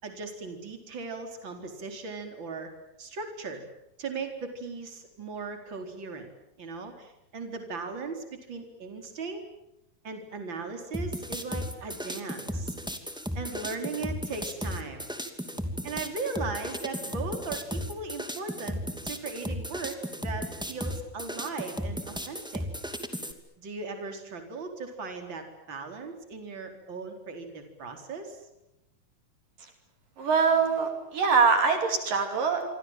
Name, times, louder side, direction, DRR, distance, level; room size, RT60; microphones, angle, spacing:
voice 1, 0.0-2.7 3.0-3.6 4.0-6.3 6.6-9.4 10.0-12.8 13.3-15.1 15.8-22.6 23.6-28.5, right 4 dB, 30° right, 5 dB, 4.6 m, -38 dB
sound 1, 10.9-23.3, equal, ahead, 1.8 m, -35 dB
voice 2, 30.2-32.6, right 5 dB, 65° right, 5 dB, 4.4 m, -23 dB
28.0 x 25.0 x 7.5 m, 0.87 s
omnidirectional pair, 4.2 m